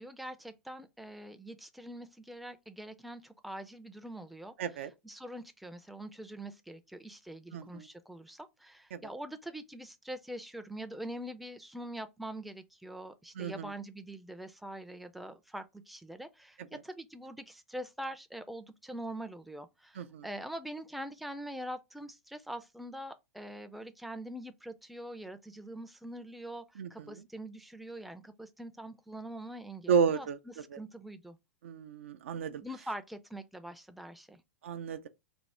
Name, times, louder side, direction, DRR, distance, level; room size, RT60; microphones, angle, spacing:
voice 1, 0.0-4.5 5.0-31.4 32.6-34.4, right 1 dB, ahead, 0.4 m, -44 dB
voice 2, 4.6-4.9 7.5-7.9 8.9-9.0 13.4-13.7 16.7-16.8 20.0-20.3 26.8-27.1 29.9-30.4 30.7-30.8 31.6-32.6 34.6-35.1, right 6 dB, 70° right, 0.4 m, -32 dB
3.4 x 2.0 x 4.2 m
hypercardioid pair, 100°, 7 cm